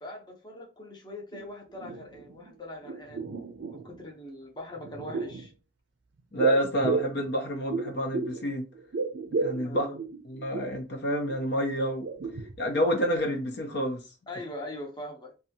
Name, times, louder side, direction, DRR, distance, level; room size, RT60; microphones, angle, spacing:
voice 1, 0.0-3.2 3.7-5.5 9.6-9.9 14.3-15.3, left 1 dB, 25° left, 0.7 m, -41 dB
sound 1, 1.3-1.4 1.7-2.5 2.8-4.0 4.8-5.5 6.4-8.5 8.7-10.8 11.3-11.4 11.8-12.9 13.1-13.2, right 4 dB, 60° right, 0.4 m, -33 dB
voice 2, 6.3-8.7 9.4-9.9 10.2-12.1 12.6-14.0, equal, 60° left, 0.6 m, -28 dB
2.6 x 2.3 x 2.7 m
head